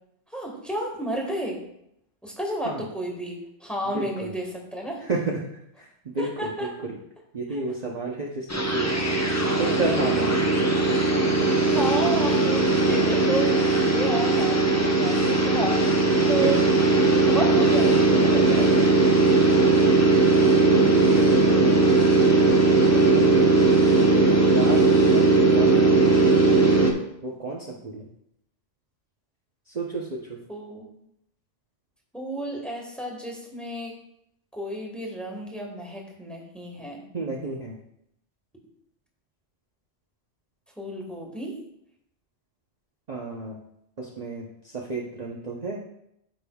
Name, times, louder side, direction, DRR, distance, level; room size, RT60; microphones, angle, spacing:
voice 1, 0.3-1.6 2.2-5.0 6.2-6.7 7.5-7.6 9.3-9.4 11.7-15.8 16.3-16.6 17.1-18.9 30.5-30.9 32.1-33.9 34.5-37.0 40.8-41.6, right 1 dB, ahead, -1 dB, 1.5 m, -32 dB
voice 2, 3.9-4.3 5.0-5.4 5.8-6.9 7.3-8.5 8.7-8.9 9.6-11.5 16.3-16.5 19.5-19.9 20.7-22.0 22.4-23.4 23.8-24.3 24.5-26.4 27.2-28.1 29.7-30.4 37.1-37.8 43.1-43.6 44.0-45.8, right 3 dB, 40° right, -3 dB, 0.9 m, -32 dB
sound 1, 8.5-26.9, right 3 dB, 15° left, 0.6 m, -19 dB
13.0 x 5.3 x 2.3 m, 0.78 s
omnidirectional pair, 1.2 m